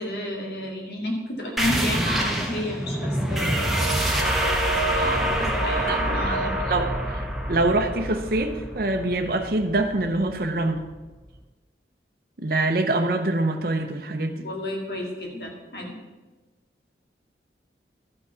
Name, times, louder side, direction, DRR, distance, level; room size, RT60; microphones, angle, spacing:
voice 1, 0.0-3.7 5.0-6.5 14.4-15.9, left 1 dB, 60° left, 0 dB, 2.2 m, -31 dB
sound 1, 1.6-10.8, right 1 dB, ahead, 1.2 m, -26 dB
voice 2, 4.9-5.3 5.6-10.9 12.4-14.4, right 2 dB, 55° right, 4 dB, 0.7 m, -25 dB
12.5 x 6.1 x 5.6 m, 1.2 s
head